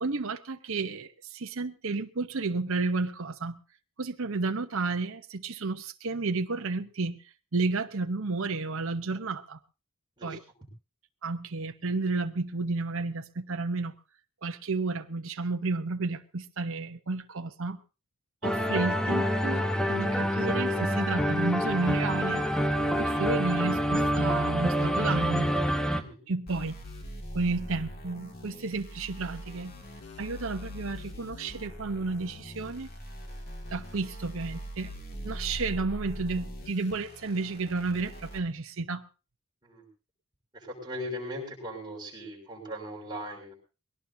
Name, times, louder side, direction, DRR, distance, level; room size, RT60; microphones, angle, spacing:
voice 1, 0.0-3.6 4.0-7.2 7.5-9.6 10.2-10.4 11.2-14.0 14.4-17.8 18.4-22.5 23.0-25.5 26.3-26.8 27.3-29.7 30.2-32.9 33.7-34.9 35.2-39.1, right 3 dB, 60° right, 6 dB, 0.9 m, -32 dB
sound 1, 18.4-26.0, equal, 5° left, 1.0 m, -27 dB
sound 2, 26.5-38.4, equal, 45° left, 2.4 m, -42 dB
voice 2, 40.5-43.5, equal, 20° right, -2 dB, 6.3 m, -39 dB
21.5 x 18.0 x 2.8 m, 0.32 s
head